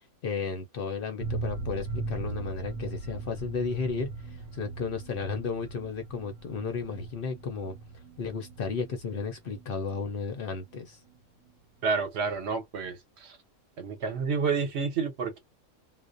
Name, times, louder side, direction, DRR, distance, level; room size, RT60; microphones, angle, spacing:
voice 1, 0.2-7.7 8.2-11.0, left 5 dB, 60° left, 0.6 m, -33 dB
sound 1, 1.2-10.8 11.1-11.2 11.4-11.5, right 3 dB, 85° right, 1.1 m, -39 dB
voice 2, 11.8-13.4 13.8-15.4, right 5 dB, 55° right, 1.0 m, -30 dB
2.4 x 2.0 x 2.5 m
omnidirectional pair, 1.5 m